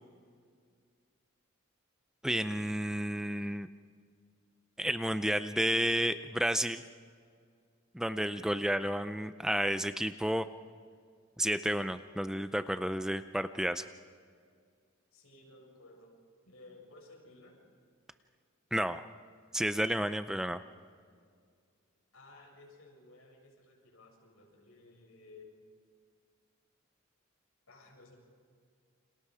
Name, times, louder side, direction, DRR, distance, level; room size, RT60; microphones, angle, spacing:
voice 1, 2.2-3.7 4.8-6.8 7.9-10.4 11.4-13.9 18.7-19.1 19.5-20.6, equal, 5° right, 11 dB, 0.5 m, -31 dB
voice 2, 15.1-16.1 16.4-17.6 22.1-25.5 27.7-28.2, left 2 dB, 85° left, 0 dB, 7.2 m, -56 dB
30.0 x 27.0 x 4.9 m, 2.1 s
head